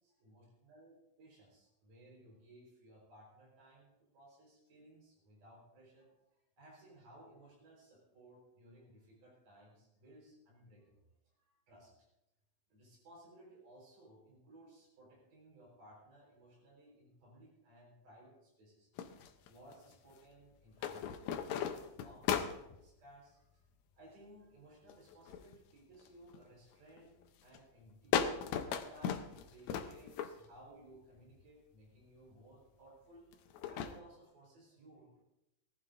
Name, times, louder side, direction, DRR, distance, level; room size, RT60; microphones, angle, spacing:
voice 1, 0.0-11.0 11.4-12.1 12.7-18.9 19.5-23.6 24.0-35.2, right 1 dB, 65° right, -2 dB, 5.9 m, -60 dB
sound 1, 19.0-19.9 20.8-22.8 24.9-25.5 26.0-26.4 27.0-27.2 27.5-27.6 28.1-30.6 31.4-31.5 33.3-34.0, left 8 dB, 75° left, 1.7 m, -37 dB
21.0 x 15.0 x 2.6 m, 0.90 s
omnidirectional pair, 4.0 m